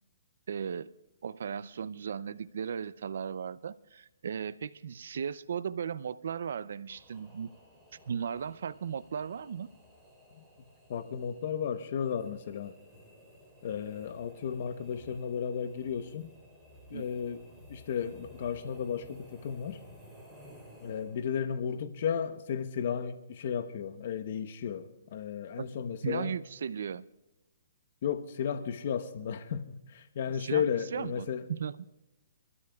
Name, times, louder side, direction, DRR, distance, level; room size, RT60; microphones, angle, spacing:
voice 1, 0.5-0.9 1.2-7.5 8.1-9.7 16.9-17.0 25.6-25.7 26.0-27.0 30.4-30.6 30.9-31.8, right 7 dB, 70° right, 0.5 m, -36 dB
sound 1, 6.9-21.4, equal, ahead, 3.2 m, -55 dB
voice 2, 10.9-12.8 13.6-16.3 16.9-17.4 17.7-19.8 20.8-26.4 28.0-31.4, left 7 dB, 50° left, 0.9 m, -34 dB
28.0 x 12.5 x 2.3 m
hypercardioid pair, 155°, 0 cm